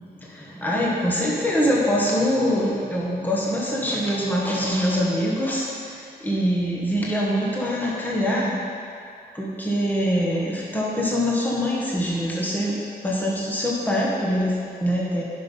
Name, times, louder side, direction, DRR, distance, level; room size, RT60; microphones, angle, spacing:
voice 1, 0.0-8.6 9.3-15.2, equal, 10° left, -5 dB, 1.4 m, -24 dB
10.0 x 5.9 x 5.5 m, 2.5 s
wide cardioid pair, 145°, 16 cm